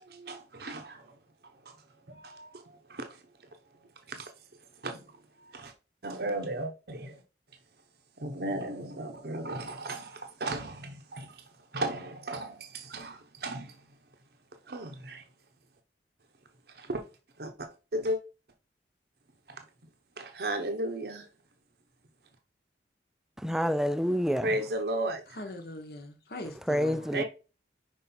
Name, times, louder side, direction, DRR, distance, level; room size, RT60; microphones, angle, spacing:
voice 1, 0.1-1.0 2.1-3.1 4.1-4.3 4.8-5.0 5.5-5.7 6.0-7.1 8.2-11.3 11.7-13.7 14.7-15.2 16.8-17.0 17.4-18.2 20.2-21.3 24.4-25.2 27.1-27.2, right 1 dB, 55° right, 0.8 m, -35 dB
voice 2, 23.4-24.6 26.7-27.2, equal, 5° right, 0.3 m, -28 dB
voice 3, 25.3-27.2, left 1 dB, 55° left, 1.0 m, -42 dB
5.4 x 4.9 x 4.3 m
head